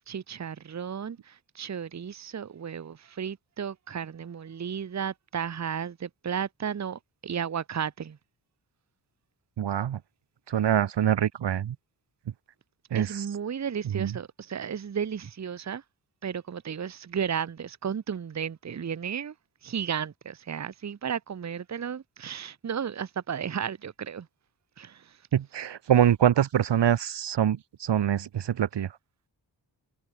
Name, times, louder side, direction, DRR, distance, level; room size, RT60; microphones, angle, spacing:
voice 1, 0.1-8.2 12.9-15.8 16.2-19.3 19.6-24.3 24.8-25.2, right 7 dB, 40° right, 1.0 m, -34 dB
voice 2, 9.6-10.0 10.5-11.7 12.9-13.1 13.9-14.1 25.3-28.9, right 10 dB, 75° right, 1.3 m, -24 dB
wide cardioid pair, 120°, 43 cm